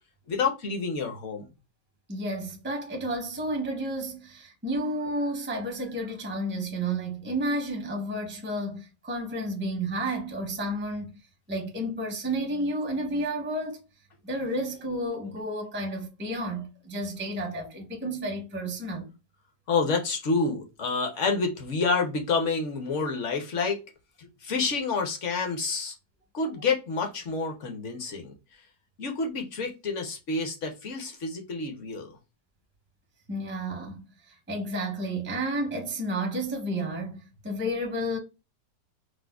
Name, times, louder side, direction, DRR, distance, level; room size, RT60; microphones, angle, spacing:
voice 1, 0.3-1.5 19.7-23.8 24.2-25.9 26.3-28.3 29.0-32.2, left 4 dB, 60° left, 0.8 m, -28 dB
voice 2, 2.1-11.1 11.5-13.8 14.2-19.1 33.3-38.2, right 1 dB, 15° right, 0.4 m, -31 dB
4.8 x 2.1 x 2.2 m
omnidirectional pair, 1.9 m